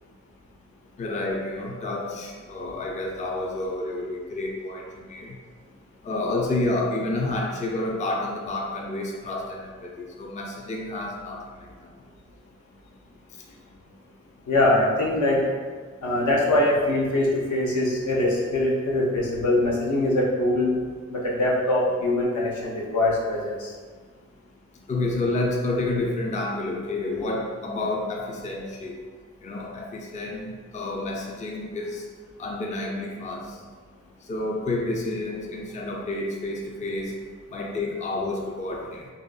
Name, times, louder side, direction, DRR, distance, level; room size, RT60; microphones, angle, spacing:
voice 1, 1.0-5.4 6.0-11.9 24.9-28.9 29.4-32.0 32.4-33.6 34.3-37.1 37.5-39.1, left 2 dB, 25° left, 0 dB, 0.4 m, -29 dB
voice 2, 14.5-15.5 16.0-20.8 21.1-23.7, left 1 dB, 70° left, -3 dB, 0.6 m, -23 dB
2.6 x 2.5 x 2.3 m, 1.6 s
cardioid pair, 50°, 30 cm